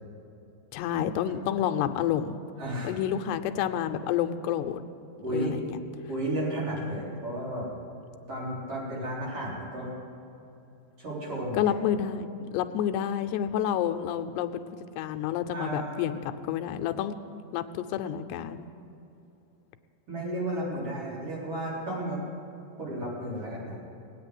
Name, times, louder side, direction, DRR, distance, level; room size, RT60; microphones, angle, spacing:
voice 1, 0.7-2.4 2.8-4.8 5.3-5.8 11.5-18.7, left 10 dB, 90° left, 8 dB, 2.8 m, -29 dB
voice 2, 2.6-3.0 5.2-5.5 6.1-7.7 8.3-9.9 11.0-11.6 15.5-16.0 20.1-22.2 22.8-23.8, right 1 dB, 35° right, -5 dB, 4.5 m, -33 dB
19.0 x 9.1 x 7.8 m, 2.8 s
omnidirectional pair, 4.7 m